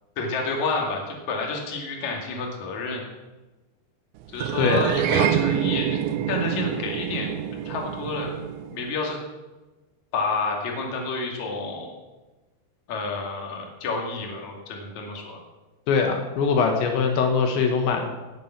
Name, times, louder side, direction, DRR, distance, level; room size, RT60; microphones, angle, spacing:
voice 1, 0.2-3.1 4.3-6.0 6.3-8.3 8.7-9.2 10.1-11.9 12.9-15.4, left 3 dB, 45° left, 0 dB, 3.4 m, -29 dB
sound 1, 4.4-8.9, right 11 dB, 85° right, 3.1 m, -26 dB
voice 2, 4.6-4.9 15.9-18.1, left 5 dB, 80° left, 3 dB, 3.7 m, -22 dB
17.5 x 9.0 x 6.0 m, 1.1 s
omnidirectional pair, 5.2 m